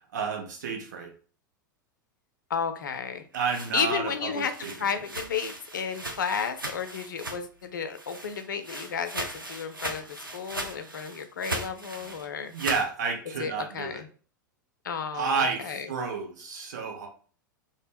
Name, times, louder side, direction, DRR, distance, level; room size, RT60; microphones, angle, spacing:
voice 1, 0.1-1.1 3.3-4.9 12.5-14.0 15.1-17.1, right 5 dB, 60° right, 1 dB, 0.7 m, -31 dB
voice 2, 2.5-3.2 3.7-4.5 4.8-10.1 10.3-12.5 13.4-14.1 14.8-15.8, left 6 dB, 70° left, 8 dB, 0.4 m, -32 dB
sound 1, 3.1-7.6 7.9-12.9, right 1 dB, 90° right, 0.4 m, -38 dB
2.0 x 2.0 x 3.2 m, 0.41 s
figure-of-eight pair, 90°, 11 cm